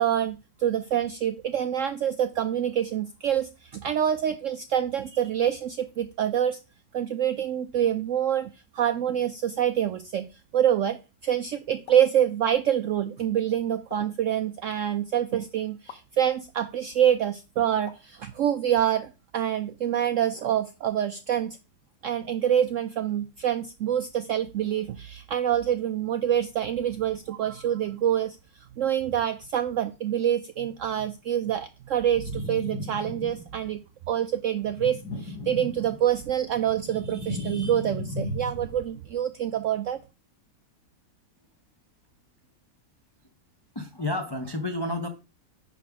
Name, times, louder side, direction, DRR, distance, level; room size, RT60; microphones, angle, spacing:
voice 1, 0.0-6.6 6.9-11.0 11.2-21.6 22.0-28.4 28.8-33.8 34.1-40.0, right 10 dB, 80° right, 0.7 m, -26 dB
sound 1, 11.9-12.2 13.9-14.2 15.9-16.1 17.9-18.2, left 8 dB, 90° left, 1.5 m, -46 dB
sound 2, 32.1-33.7 34.7-36.2 36.6-38.9, left 1 dB, 60° left, 4.2 m, -36 dB
voice 2, 43.7-45.1, left 1 dB, 20° left, 0.6 m, -30 dB
10.0 x 3.4 x 6.0 m
omnidirectional pair, 1.9 m